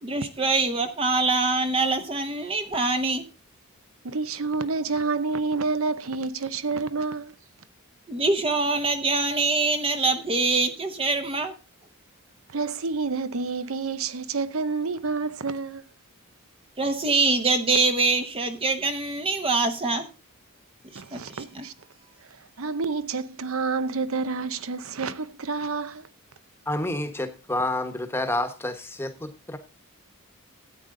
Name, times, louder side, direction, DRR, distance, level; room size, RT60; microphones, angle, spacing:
voice 1, 0.0-3.2 8.1-11.5 16.8-20.1 20.9-21.6, right 3 dB, 25° right, 0.9 m, -24 dB
voice 2, 4.0-7.3 12.5-15.9 20.9-21.7 22.2-26.1, right 4 dB, 65° right, 0.8 m, -29 dB
voice 3, 26.7-29.6, left 1 dB, 10° left, 1.2 m, -29 dB
13.5 x 8.8 x 3.8 m
head